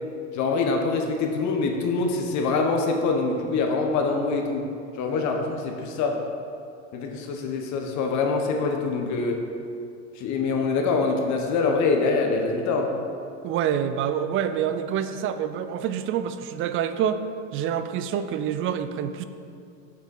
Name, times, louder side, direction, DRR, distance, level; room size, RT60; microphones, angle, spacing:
voice 1, 0.3-4.7 4.9-6.2 6.9-9.4 10.2-12.9, left 4 dB, 45° left, 3 dB, 1.1 m, -24 dB
voice 2, 13.4-17.2 17.5-19.2, right 9 dB, 35° right, 10 dB, 0.4 m, -27 dB
6.7 x 6.5 x 5.3 m, 2.5 s
supercardioid pair, 115°, 39 cm